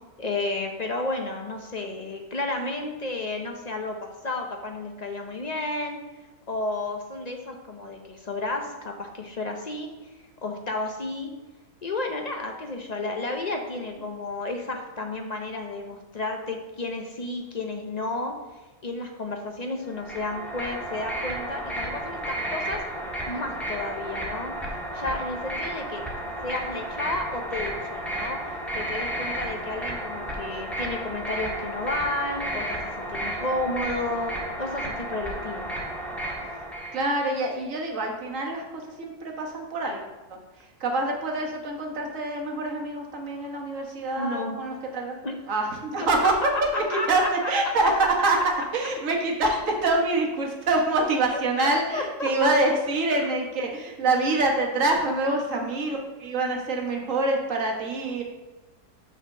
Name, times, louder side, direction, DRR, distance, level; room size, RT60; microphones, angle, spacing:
voice 1, 0.2-6.0 6.5-9.9 10.4-11.3 11.8-18.3 18.8-22.8 23.3-24.5 24.9-26.0 26.4-35.7 44.2-44.6 45.2-45.4 46.9-47.5 51.3-52.5 53.1-53.3 55.3-55.7, left 2 dB, 45° left, 3 dB, 0.5 m, -32 dB
sound 1, 19.9-37.0, right 1 dB, ahead, 1.4 m, -33 dB
voice 2, 36.9-45.1 45.5-46.3 46.7-48.4 48.7-58.2, right 2 dB, 55° right, 1 dB, 1.6 m, -26 dB
6.3 x 4.3 x 6.5 m, 1.1 s
omnidirectional pair, 1.6 m